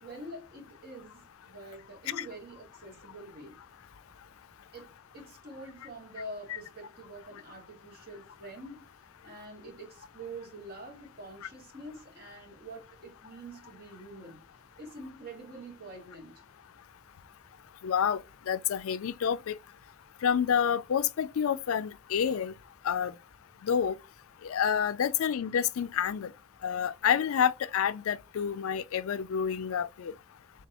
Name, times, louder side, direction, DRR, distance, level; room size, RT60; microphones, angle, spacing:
voice 1, 0.0-3.6 4.7-4.9 5.1-8.9 9.2-14.4 14.8-16.4, right 1 dB, 45° right, 2.3 m, -46 dB
voice 2, 17.8-18.2 18.5-19.6 20.2-22.5 22.8-23.1 23.6-24.0 24.4-26.3 26.6-30.1, left 8 dB, 85° left, 0.4 m, -28 dB
4.1 x 3.7 x 2.6 m
head